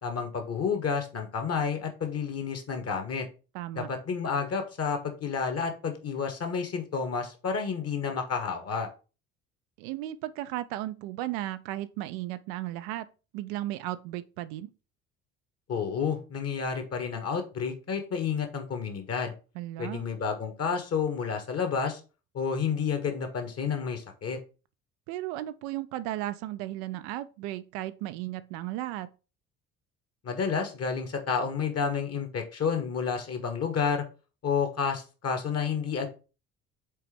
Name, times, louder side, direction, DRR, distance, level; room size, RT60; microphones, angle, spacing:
voice 1, 0.0-3.3 3.8-8.9 15.7-19.3 19.8-22.0 22.3-24.4 30.2-34.0 34.4-36.1, left 6 dB, 40° left, 1.7 m, -30 dB
voice 2, 3.5-3.9 9.8-13.1 13.3-14.7 19.5-20.0 25.1-29.1, right 15 dB, 55° right, 0.5 m, -35 dB
5.3 x 4.2 x 5.0 m
figure-of-eight pair, 50°, 39 cm